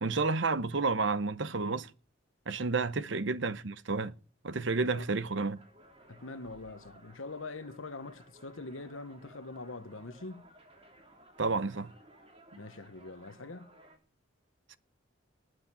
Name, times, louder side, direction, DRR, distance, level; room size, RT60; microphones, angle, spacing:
voice 1, 0.0-1.9 2.5-4.1 4.4-5.6 11.4-11.9 14.7-14.8, right 3 dB, 65° right, 0.9 m, -30 dB
sound 1, 5.5-14.0, right 1 dB, 30° right, 3.1 m, -58 dB
voice 2, 6.1-10.4 12.6-13.7, left 3 dB, 85° left, 1.2 m, -44 dB
19.5 x 6.6 x 8.7 m
head